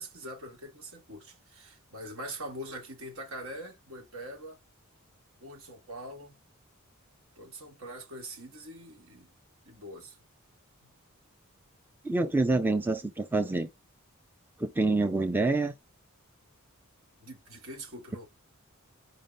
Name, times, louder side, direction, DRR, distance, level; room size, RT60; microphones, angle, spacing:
voice 1, 0.0-4.6 5.4-6.4 7.4-9.3 9.6-10.2 10.8-10.9 17.2-18.3, right 1 dB, 70° right, 2.1 m, -43 dB
voice 2, 12.0-13.7 14.6-15.7, right 2 dB, 10° right, 0.4 m, -27 dB
5.2 x 3.5 x 5.3 m
head